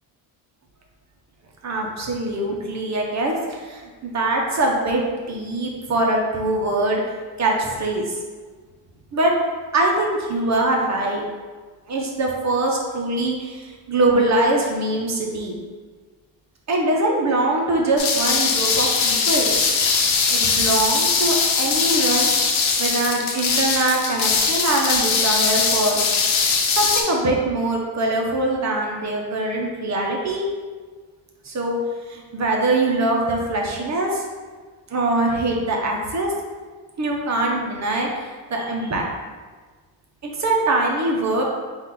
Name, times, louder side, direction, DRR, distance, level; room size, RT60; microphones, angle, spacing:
voice 1, 1.6-7.0 7.4-8.1 9.1-9.3 9.7-11.2 11.9-15.5 16.7-19.6 20.3-26.0 26.7-30.5 31.4-31.8 32.1-34.2 34.9-36.3 37.0-39.0 40.2-41.4, right 2 dB, 35° right, -1 dB, 0.7 m, -23 dB
sound 1, 18.0-27.0, left 5 dB, 90° left, 0.8 m, -20 dB
4.2 x 2.5 x 3.8 m, 1.4 s
cardioid pair, 120°, 45 cm